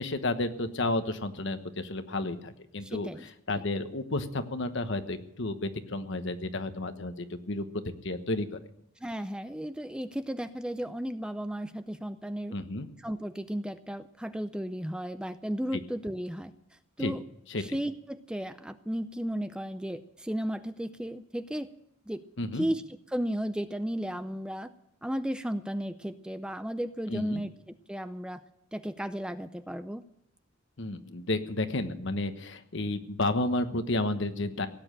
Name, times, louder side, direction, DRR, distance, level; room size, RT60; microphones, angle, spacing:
voice 1, 0.0-3.1 3.5-7.6 8.0-8.6 12.5-12.9 17.0-17.1 17.5-17.8 22.4-22.6 27.1-27.4 30.8-34.7, left 2 dB, 60° left, 9 dB, 1.2 m, -31 dB
voice 2, 2.8-3.3 3.5-3.6 9.0-12.5 13.0-16.5 17.0-17.2 17.6-21.7 22.1-22.2 22.5-24.7 25.0-28.4 28.7-30.0, equal, 5° right, 10 dB, 0.5 m, -34 dB
17.5 x 8.9 x 8.9 m, 0.76 s
head